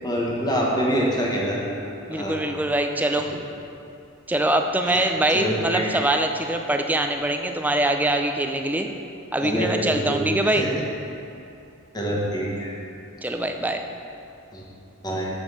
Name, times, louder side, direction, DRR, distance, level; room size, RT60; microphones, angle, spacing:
voice 1, 0.0-1.6 2.1-2.4 4.8-6.0 9.4-10.7 11.9-12.7 14.5-14.6 15.0-15.3, equal, 20° left, -3 dB, 1.3 m, -26 dB
voice 2, 2.1-3.3 4.3-8.9 9.3-10.7 13.2-13.8, right 1 dB, 10° right, 5 dB, 0.4 m, -23 dB
7.3 x 5.1 x 6.4 m, 2.6 s
head